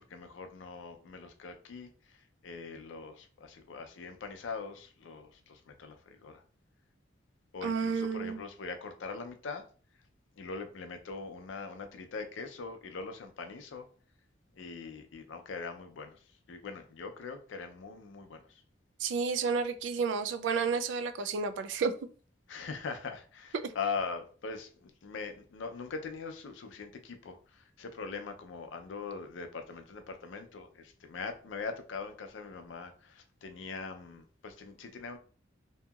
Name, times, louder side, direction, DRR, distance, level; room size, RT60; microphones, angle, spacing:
voice 1, 0.1-2.2 2.4-6.4 7.5-9.7 10.4-13.9 14.6-16.2 16.5-18.6 22.5-35.2, left 4 dB, 85° left, 0.5 m, -42 dB
voice 2, 7.6-8.4 19.0-21.9 23.5-23.7, right 5 dB, 75° right, 0.3 m, -31 dB
2.8 x 2.7 x 2.3 m
head